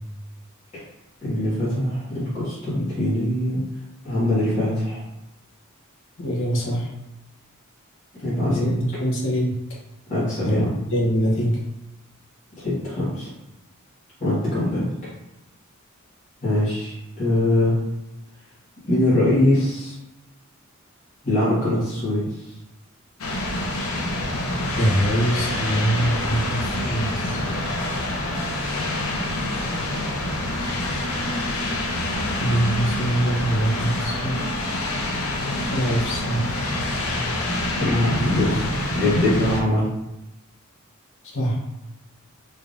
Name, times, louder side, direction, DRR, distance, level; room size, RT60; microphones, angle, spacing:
voice 1, 1.2-3.6 4.0-5.0 8.1-8.7 10.1-10.7 12.6-13.3 14.2-14.9 16.4-17.8 18.9-19.9 21.2-22.5 37.8-39.9, left 1 dB, 35° left, -11 dB, 1.5 m, -22 dB
voice 2, 6.2-6.9 8.6-9.5 10.4-10.6 10.9-11.5 24.7-27.4 32.4-34.4 35.6-36.4 41.3-41.6, right 1 dB, 65° left, -4 dB, 1.0 m, -23 dB
sound 1, 23.2-39.6, left 1 dB, 80° left, 0.7 m, -26 dB
3.6 x 3.3 x 2.5 m, 0.93 s
head